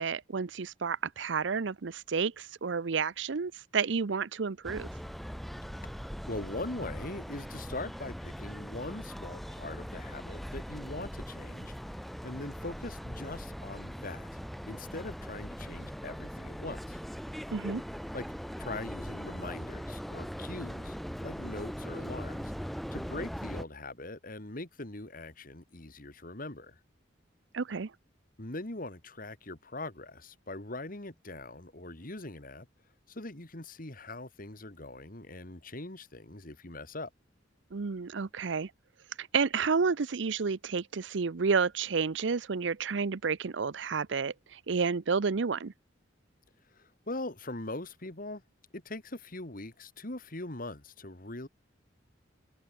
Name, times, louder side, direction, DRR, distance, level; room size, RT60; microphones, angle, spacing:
voice 1, 0.0-4.9 17.5-17.8 27.5-27.9 37.7-38.7 39.2-45.7, right 5 dB, 75° right, 0.6 m, -30 dB
sound 1, 4.6-23.6, equal, ahead, 1.1 m, -40 dB
voice 2, 6.3-14.4 14.7-17.0 18.1-18.3 18.6-22.5 22.9-26.8 28.4-32.7 33.1-37.1 46.7-48.4 48.7-51.5, left 2 dB, 50° left, 2.6 m, -41 dB
head